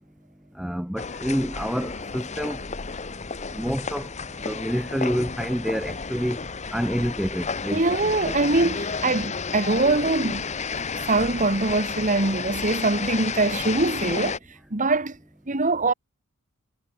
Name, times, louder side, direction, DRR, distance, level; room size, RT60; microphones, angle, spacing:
voice 1, 0.6-2.6 3.5-4.1 4.4-6.4 6.7-7.8, equal, ahead, 0.6 m, -27 dB
sound 1, 1.0-14.4, left 5 dB, 30° left, 1.0 m, -32 dB
voice 2, 7.7-10.5 11.1-14.4 14.7-15.2 15.5-15.9, right 2 dB, 35° right, 1.7 m, -23 dB
head